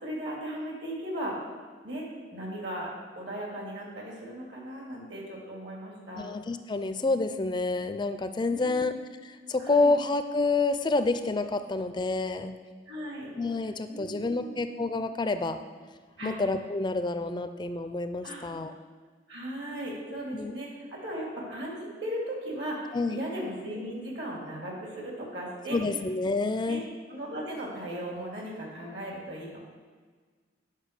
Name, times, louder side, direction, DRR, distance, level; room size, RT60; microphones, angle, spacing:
voice 1, 0.0-1.4 1.8-2.0 2.3-2.9 3.1-6.3 8.5-9.0 9.6-9.9 12.9-13.3 13.9-14.6 16.2-16.4 18.2-18.4 19.3-25.8 26.6-26.8 27.1-29.6, right 1 dB, 65° right, -2 dB, 2.7 m, -37 dB
voice 2, 6.1-8.9 9.2-12.6 13.4-15.6 16.2-18.7 20.3-20.5 22.9-23.2 25.7-26.8, left 3 dB, 25° left, 9 dB, 0.4 m, -28 dB
10.0 x 5.5 x 6.6 m, 1.5 s
head